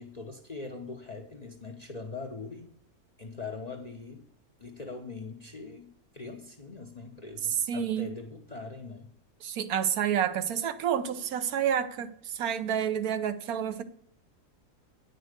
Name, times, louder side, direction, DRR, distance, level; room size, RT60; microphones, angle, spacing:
voice 1, 0.0-2.7 3.2-4.3 4.6-9.1, left 3 dB, 40° left, 0.6 m, -42 dB
voice 2, 7.7-8.1 9.4-13.8, right 9 dB, 75° right, 1.2 m, -29 dB
9.6 x 5.4 x 6.5 m
omnidirectional pair, 1.6 m